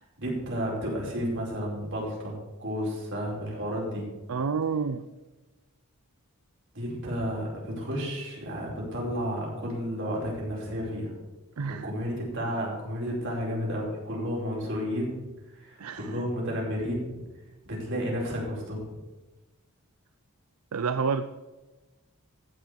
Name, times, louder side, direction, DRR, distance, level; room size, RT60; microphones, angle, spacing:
voice 1, 0.2-4.1 6.7-11.1 11.7-15.2 15.5-17.2 17.7-18.8, equal, 55° right, -3 dB, 4.9 m, -32 dB
voice 2, 4.3-5.0 11.6-11.9 15.8-16.1 20.7-21.2, right 5 dB, 80° right, 10 dB, 0.5 m, -28 dB
15.5 x 6.0 x 7.0 m, 1.2 s
head